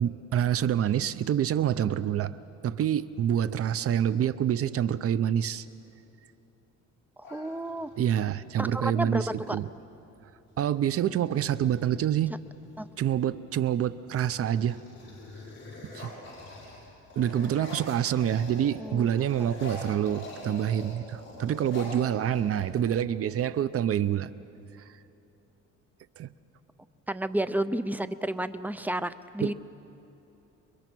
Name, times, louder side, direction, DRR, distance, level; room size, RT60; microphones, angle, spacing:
voice 1, 0.0-2.4 2.6-5.7 8.0-9.7 10.6-12.3 13.0-14.8 15.9-16.1 17.2-24.3 26.2-26.3 29.4-29.5, right 10 dB, 50° right, 15 dB, 0.7 m, -27 dB
sound 1, 7.2-8.1 9.8-10.0 10.3-10.8 11.3-12.9 13.5-13.9 14.2-18.8 19.1-23.0, left 2 dB, 40° left, 7.0 m, -44 dB
voice 2, 7.2-7.9 8.6-9.6 12.8-12.9 18.8-19.1 19.4-19.5 20.4-20.6 27.1-29.5, right 1 dB, 5° right, 13 dB, 0.5 m, -31 dB
29.5 x 22.5 x 6.2 m, 3.0 s
cardioid pair, 130°, 30 cm